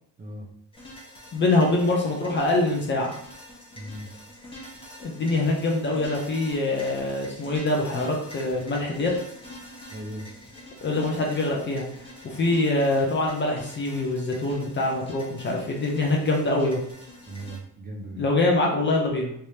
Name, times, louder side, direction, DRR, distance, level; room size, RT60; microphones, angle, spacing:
sound 1, 0.7-17.6, left 1 dB, 15° left, 1.1 m, -45 dB
voice 1, 1.3-3.1 5.0-9.1 10.8-11.8 12.2-16.8 18.2-19.3, left 2 dB, 30° left, -1 dB, 0.6 m, -24 dB
voice 2, 3.7-4.1 9.9-10.3 17.3-18.2, right 1 dB, 20° right, -1 dB, 0.7 m, -37 dB
3.3 x 3.3 x 2.8 m, 0.71 s
cardioid pair, 150°, 40 cm